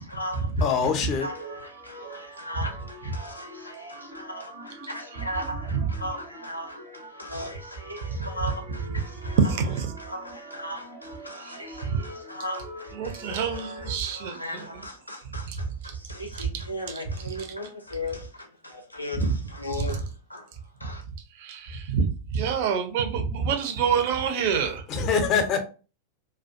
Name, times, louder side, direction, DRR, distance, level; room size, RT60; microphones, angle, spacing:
voice 1, 0.0-9.4 10.0-20.5 20.8-21.0, left 1 dB, 85° left, 0.5 m, -38 dB
voice 2, 0.6-1.3 24.9-25.6, left 6 dB, 35° left, 0.5 m, -24 dB
sound 1, 1.1-14.0, right 1 dB, 75° right, 0.8 m, -44 dB
voice 3, 9.3-9.9 11.4-12.0 12.9-14.8 15.5-16.0 16.4-17.5 19.1-19.4 19.7-20.0 21.4-25.1, right 6 dB, 50° right, 0.5 m, -27 dB
2.3 x 2.2 x 2.5 m
figure-of-eight pair, 90°, 0 cm